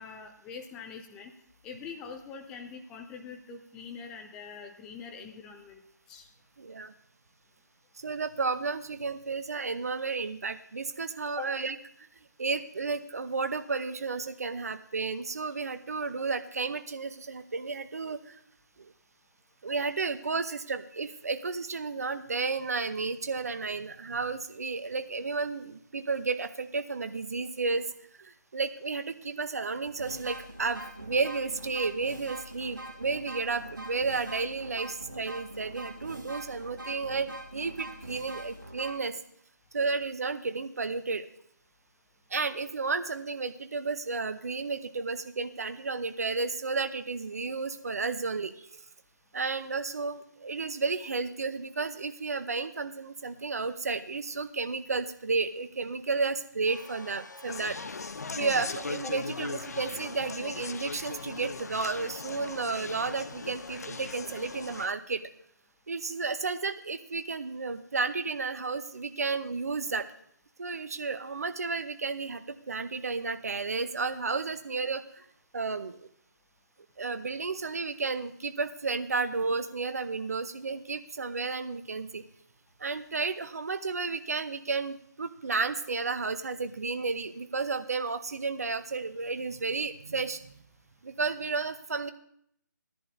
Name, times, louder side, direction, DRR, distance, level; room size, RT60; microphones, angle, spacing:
voice 1, 0.0-1.3 1.6-5.8 6.1-6.3 11.4-11.5 59.0-59.2, left 5 dB, 5° left, 4 dB, 0.4 m, -43 dB
voice 2, 6.6-6.9 8.0-11.8 12.4-18.4 19.6-27.9 28.2-39.2 39.7-41.3 42.3-48.8 49.3-58.1 58.4-65.2 65.9-70.1 70.6-75.2 75.5-76.1 77.0-82.2 82.8-90.4 91.0-92.1, right 4 dB, 50° right, 10 dB, 0.9 m, -32 dB
sound 1, 29.2-29.3 29.9-38.9, right 1 dB, 75° right, 2.1 m, -43 dB
sound 2, 56.7-64.9, left 3 dB, 70° left, 0.9 m, -48 dB
Conversation, 57.5-64.9, left 4 dB, 50° left, 0.6 m, -39 dB
16.5 x 10.5 x 2.7 m, 0.68 s
figure-of-eight pair, 150°, 10 cm